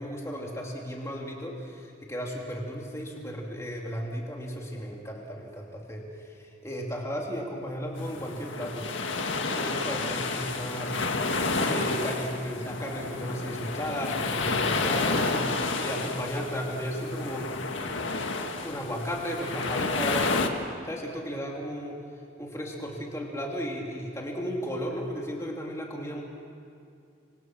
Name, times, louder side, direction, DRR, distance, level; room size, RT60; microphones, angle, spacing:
voice 1, 0.0-6.1 6.6-8.9 9.6-10.9 11.6-15.3 15.8-17.5 18.6-20.3 20.8-22.0 22.4-26.2, equal, 15° left, -1 dB, 2.9 m, -34 dB
sound 1, 8.0-20.5, left 3 dB, 90° left, 1.9 m, -30 dB
27.5 x 25.0 x 6.2 m, 2.4 s
head